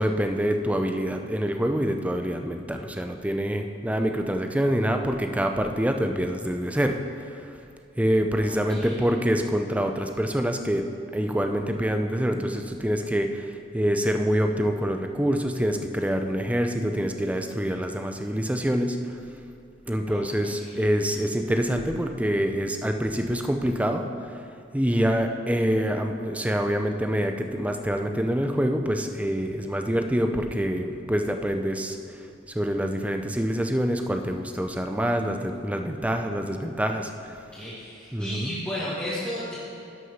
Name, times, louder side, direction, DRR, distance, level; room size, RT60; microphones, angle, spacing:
voice 1, 0.0-7.5 8.0-19.2 19.9-24.4 24.7-37.4 38.1-38.6, equal, 5° right, 5 dB, 0.6 m, -26 dB
voice 2, 37.5-39.5, equal, 10° left, -10 dB, 1.8 m, -33 dB
11.5 x 6.2 x 5.6 m, 2.6 s
head